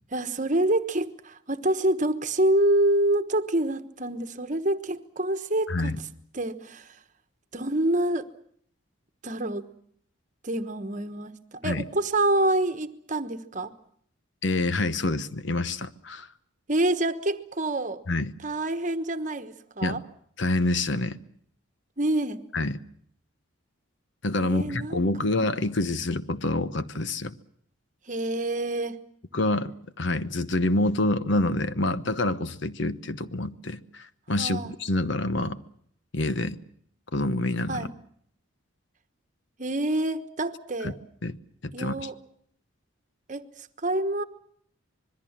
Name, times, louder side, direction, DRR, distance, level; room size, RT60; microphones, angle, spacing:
voice 1, 0.1-6.1 6.3-7.0 7.5-8.3 9.2-9.7 10.4-13.7 16.7-18.0 18.4-20.0 22.0-22.5 24.4-25.3 28.1-29.0 34.4-34.7 37.7-37.9 39.6-41.0 41.7-42.1 43.3-44.2, right 1 dB, 35° right, 10 dB, 1.2 m, -27 dB
voice 2, 14.4-16.3 18.1-18.3 19.8-20.0 20.4-21.2 22.5-22.8 24.2-27.3 29.3-29.7 30.0-35.6 36.1-36.6 37.1-37.9 40.8-40.9 41.2-41.4 41.6-41.9, left 2 dB, 60° left, 13 dB, 1.0 m, -27 dB
26.0 x 21.5 x 7.3 m, 0.65 s
head